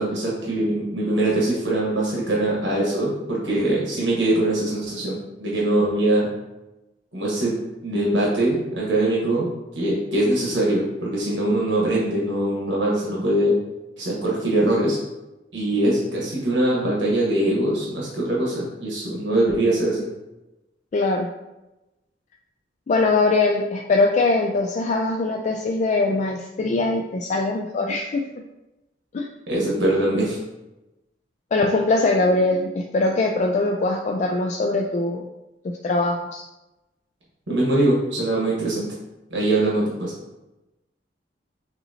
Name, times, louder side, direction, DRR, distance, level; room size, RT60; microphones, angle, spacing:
voice 1, 0.0-6.3 7.1-7.5 7.8-9.5 9.7-13.5 14.0-15.0 15.5-20.0 29.5-30.4 37.5-38.9 39.3-40.1, right 1 dB, 85° right, -5 dB, 1.2 m, -22 dB
voice 2, 20.9-21.3 22.9-28.2 29.1-29.3 31.5-35.3 35.8-36.4, left 3 dB, 40° left, 1 dB, 0.3 m, -22 dB
6.8 x 2.8 x 2.7 m, 1.0 s
head